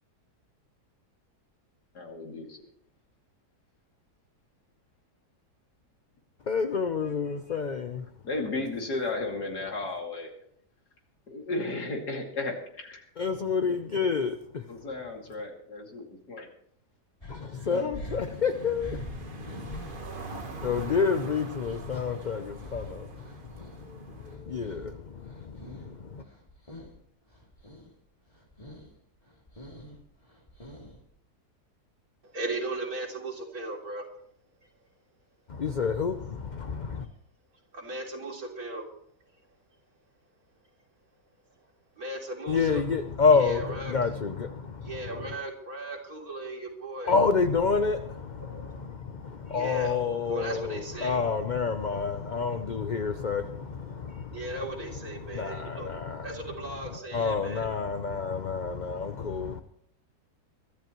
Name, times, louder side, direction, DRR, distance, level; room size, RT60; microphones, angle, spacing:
voice 1, 1.9-2.6 7.5-7.6 8.2-10.3 11.3-13.0 14.7-16.5, left 2 dB, 75° left, 3.1 m, -34 dB
voice 2, 6.5-8.1 13.2-14.7 17.3-19.8 20.6-26.2 35.5-37.1 42.5-45.4 47.1-54.5 55.1-56.4 56.6-59.6, left 5 dB, 50° left, 0.5 m, -29 dB
sound 1, 17.2-23.8 24.2-26.0 26.2-27.0 27.3-27.9 28.3-28.9 29.2-31.1, left 1 dB, 20° left, 2.8 m, -45 dB
sound 2, 18.1-24.4, right 3 dB, 35° right, 1.5 m, -44 dB
voice 3, 32.2-34.0 37.7-38.9 42.0-42.8 43.3-43.9 44.8-47.1 48.5-48.6 49.5-49.9 50.3-51.2 54.1-56.0 56.2-57.7, right 1 dB, 60° right, 3.7 m, -36 dB
23.5 x 13.0 x 3.1 m
omnidirectional pair, 1.7 m